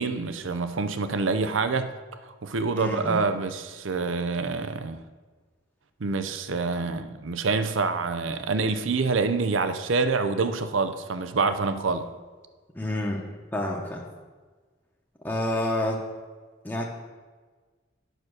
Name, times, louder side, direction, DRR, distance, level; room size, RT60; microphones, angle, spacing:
voice 1, 0.0-1.9 2.2-5.0 6.0-12.1, right 4 dB, 90° right, 10 dB, 0.6 m, -26 dB
voice 2, 2.8-3.2 12.7-13.2 13.5-14.0 15.2-16.0 16.6-16.8, left 1 dB, 10° left, -2 dB, 0.9 m, -28 dB
9.3 x 6.0 x 6.3 m, 1.4 s
head